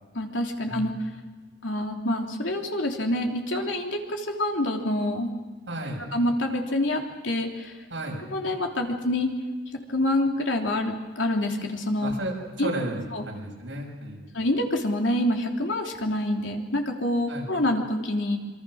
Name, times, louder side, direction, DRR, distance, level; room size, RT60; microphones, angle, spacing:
voice 1, 0.2-0.9 1.6-5.3 6.1-7.8 8.3-9.3 9.9-12.1 12.6-12.7 13.1-13.2 14.3-18.4, left 1 dB, 90° left, 2 dB, 3.3 m, -26 dB
voice 2, 5.7-6.0 7.9-8.2 12.0-14.2 17.3-17.5, right 1 dB, 75° right, 0 dB, 6.9 m, -33 dB
26.5 x 24.5 x 6.5 m, 1.4 s
head